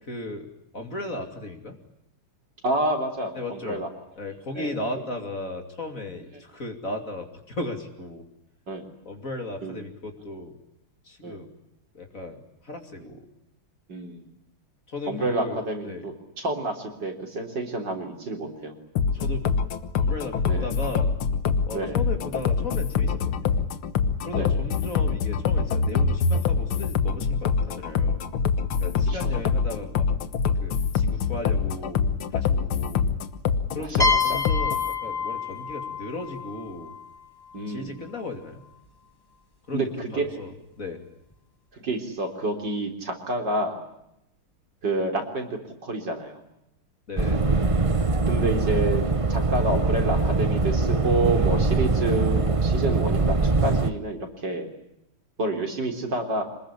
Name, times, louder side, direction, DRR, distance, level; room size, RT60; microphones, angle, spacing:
voice 1, 0.1-0.5 0.7-1.8 3.3-3.8 4.2-8.2 9.0-10.6 11.0-11.5 11.9-13.3 14.9-16.1 19.1-19.5 20.0-21.1 21.7-23.5 24.2-28.2 28.7-30.1 30.6-33.1 33.7-36.9 37.5-38.6 39.7-41.0 47.1-47.4, left 2 dB, 40° left, 5 dB, 3.2 m, -36 dB
voice 2, 2.6-3.9 4.6-4.7 8.7-8.8 9.6-9.8 11.2-11.4 13.9-14.3 15.1-18.8 20.5-20.7 21.7-22.0 24.3-24.6 29.1-29.2 33.8-34.4 37.5-38.0 39.7-40.5 41.7-43.8 44.8-46.4 48.3-49.0 49.3-54.7 55.4-56.4, right 2 dB, 55° right, 4 dB, 4.3 m, -29 dB
sound 1, 19.0-34.9, left 5 dB, 80° left, 2.1 m, -25 dB
sound 2, 34.0-37.6, left 4 dB, 10° left, 1.5 m, -27 dB
sound 3, 47.2-53.9, right 3 dB, 25° right, 0.7 m, -22 dB
26.5 x 21.0 x 10.0 m, 0.83 s
omnidirectional pair, 2.3 m